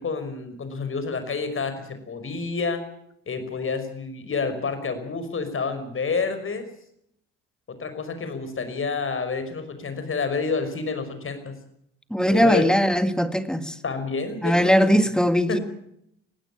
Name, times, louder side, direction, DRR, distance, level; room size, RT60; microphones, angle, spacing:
voice 1, 0.0-2.8 3.3-6.7 7.7-11.6 12.3-12.6 13.8-15.1 15.5-15.6, left 4 dB, 35° left, 9 dB, 5.6 m, -29 dB
voice 2, 12.1-13.8 14.4-15.6, equal, ahead, 11 dB, 2.1 m, -20 dB
20.5 x 16.5 x 8.8 m, 0.72 s
hypercardioid pair, 60°, 36 cm